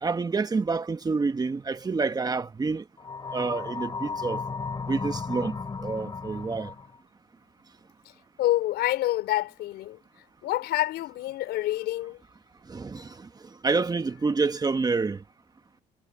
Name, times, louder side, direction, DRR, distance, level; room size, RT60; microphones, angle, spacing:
voice 1, 0.0-2.8 3.3-4.4 4.9-6.7 12.7-13.3 13.6-15.2, right 4 dB, 25° right, 1.5 m, -28 dB
sound 1, 3.0-7.0, left 4 dB, 25° left, 6.1 m, -34 dB
voice 2, 8.4-10.0 10.4-12.2, left 15 dB, 80° left, 5.7 m, -27 dB
cardioid pair, 110°, 17 cm